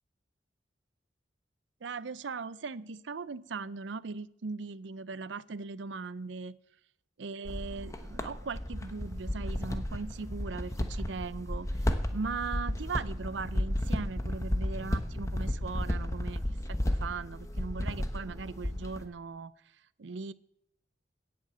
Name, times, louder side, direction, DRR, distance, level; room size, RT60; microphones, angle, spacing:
voice 1, 1.8-6.6 7.2-16.4 16.7-19.5 20.0-20.3, right 4 dB, 85° right, 17 dB, 0.6 m, -39 dB
sound 1, 7.4-19.0, left 1 dB, 20° left, 1.1 m, -33 dB
17.5 x 7.7 x 6.9 m, 0.73 s
head